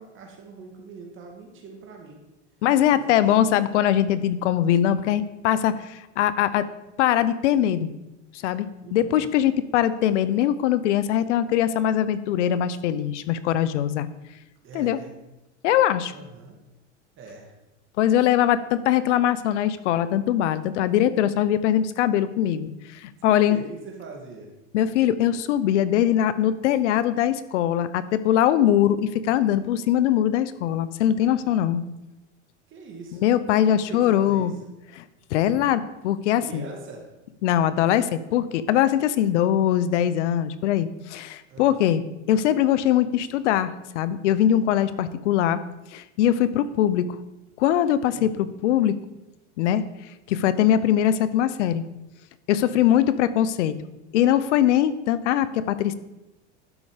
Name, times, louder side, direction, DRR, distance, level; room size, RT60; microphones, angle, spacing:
voice 1, 0.0-2.2 2.9-3.4 8.8-9.4 14.6-15.1 16.1-16.6 17.2-17.5 23.2-24.5 32.7-33.3 33.9-34.6 36.4-37.0 41.5-41.9 48.1-48.4 52.7-52.9, right 4 dB, 35° right, 1 dB, 2.2 m, -41 dB
voice 2, 2.6-6.7 7.0-7.9 8.3-14.1 14.7-15.0 15.6-16.1 18.0-23.6 24.7-31.8 33.2-34.5 35.0-35.1 35.3-36.7 37.4-42.0 42.3-45.6 45.9-47.2 47.6-49.0 49.6-49.8 50.3-51.8 52.5-53.8 54.1-55.9, left 11 dB, 75° left, 15 dB, 0.7 m, -22 dB
12.0 x 5.4 x 5.0 m, 0.97 s
supercardioid pair, 125°, 35 cm